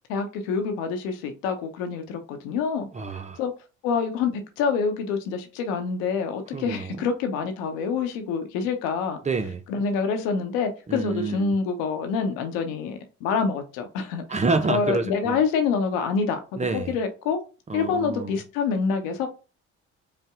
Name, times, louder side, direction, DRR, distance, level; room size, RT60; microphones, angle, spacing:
voice 1, 0.1-2.9 3.4-3.5 3.8-9.2 9.7-14.2 14.7-17.4 17.7-19.3, left 5 dB, 65° left, 0.9 m, -26 dB
voice 2, 2.9-3.4 6.5-7.1 9.2-9.6 10.9-11.5 14.3-15.4 16.6-17.0 17.7-18.4, right 3 dB, 20° right, 0.6 m, -28 dB
5.3 x 2.2 x 3.6 m
figure-of-eight pair, 50°, 36 cm